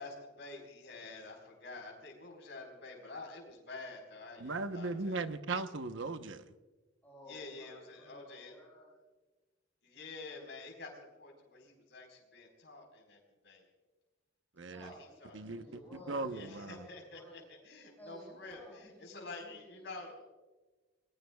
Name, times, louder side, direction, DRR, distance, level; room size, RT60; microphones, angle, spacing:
voice 1, 0.0-5.2 7.3-8.6 9.8-13.6 14.8-15.4 16.3-20.1, left 3 dB, 65° left, 1 dB, 4.3 m, -49 dB
voice 2, 4.4-6.5 14.6-14.9 15.3-15.6 15.9-16.9, right 3 dB, 80° right, 9 dB, 0.9 m, -38 dB
voice 3, 7.0-8.9 14.7-17.4 18.0-19.8, equal, 10° left, -6 dB, 5.3 m, -54 dB
27.0 x 20.5 x 2.3 m, 1.3 s
head